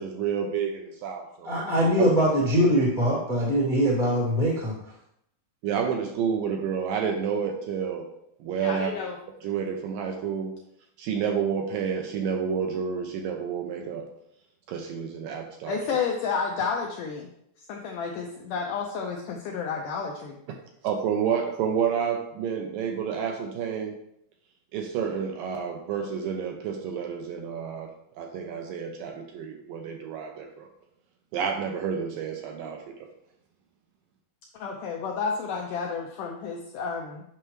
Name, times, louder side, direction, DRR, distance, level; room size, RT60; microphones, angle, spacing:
voice 1, 0.0-2.1 4.1-4.2 5.6-8.1 8.4-8.9 9.4-10.5 11.0-14.1 14.7-15.8 20.5-20.6 20.8-24.0 24.7-30.7 31.3-32.9, right 7 dB, 80° right, 3 dB, 2.1 m, -30 dB
voice 2, 1.4-4.7, equal, 50° left, -5 dB, 0.5 m, -22 dB
voice 3, 8.6-9.2 15.7-17.3 17.7-20.4 34.5-37.2, left 5 dB, 80° left, 1 dB, 1.8 m, -31 dB
8.8 x 5.8 x 3.1 m, 0.75 s
omnidirectional pair, 4.5 m